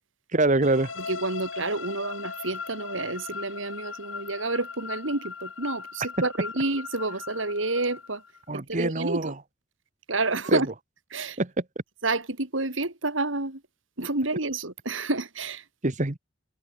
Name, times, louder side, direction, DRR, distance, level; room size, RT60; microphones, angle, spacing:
voice 1, 0.3-0.9 8.5-9.3 10.5-10.6 11.4-11.5 15.8-16.2, right 2 dB, 40° right, 1.5 m, -24 dB
sound 1, 0.6-8.4, left 5 dB, 85° left, 3.0 m, -39 dB
voice 2, 1.0-8.2 8.5-9.3 10.1-10.7 11.1-11.4 12.0-13.6 14.0-15.6, right 2 dB, 75° right, 3.4 m, -29 dB
head